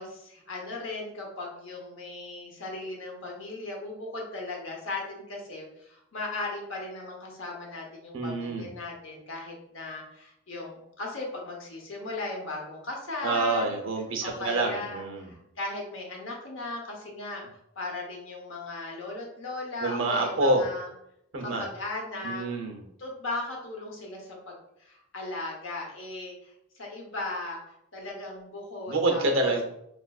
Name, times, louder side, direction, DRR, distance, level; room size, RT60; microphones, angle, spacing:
voice 1, 0.0-13.8 14.2-17.5 17.8-20.9 21.4-22.4 23.0-26.5 26.7-27.6 27.9-29.5, left 2 dB, 65° left, 0 dB, 0.8 m, -37 dB
voice 2, 8.1-8.7 13.2-15.3 19.8-20.6 21.3-21.7 22.2-22.8 28.9-29.6, right 2 dB, 70° right, 3 dB, 0.6 m, -27 dB
4.1 x 2.5 x 2.3 m, 0.78 s
head